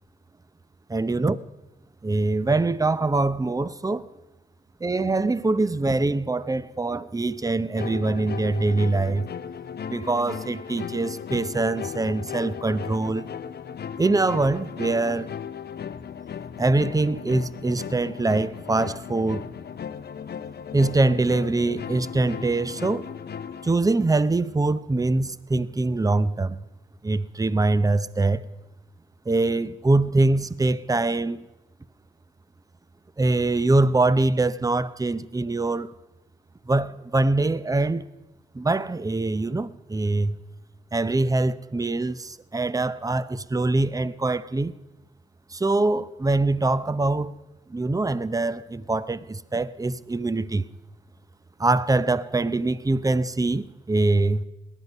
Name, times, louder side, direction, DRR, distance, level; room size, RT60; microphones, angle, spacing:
voice 1, 0.9-1.4 2.0-4.1 4.8-9.3 9.9-13.2 14.0-15.3 16.6-19.4 20.7-23.1 23.6-26.6 27.0-28.4 29.3-31.4 33.2-35.9 36.7-38.1 38.5-40.4 40.9-44.7 45.5-47.4 47.7-50.6 51.6-54.4, right 2 dB, 15° right, 0.7 m, -23 dB
sound 1, 7.8-23.7, left 8 dB, 50° left, 0.7 m, -36 dB
18.5 x 11.0 x 5.4 m
supercardioid pair, 60°, 21 cm